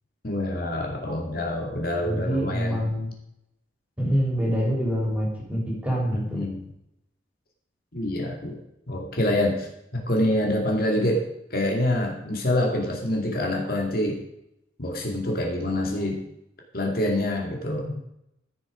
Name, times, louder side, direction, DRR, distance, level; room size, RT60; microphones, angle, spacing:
voice 1, 0.2-2.8 6.1-6.6 7.9-8.5 8.9-9.7 9.9-11.2 11.5-14.2 14.8-16.2 16.7-18.0, left 1 dB, 50° left, 0 dB, 2.3 m, -26 dB
voice 2, 2.0-3.1 4.0-6.4, equal, 5° right, -2 dB, 3.4 m, -26 dB
14.0 x 7.0 x 5.1 m, 0.80 s
head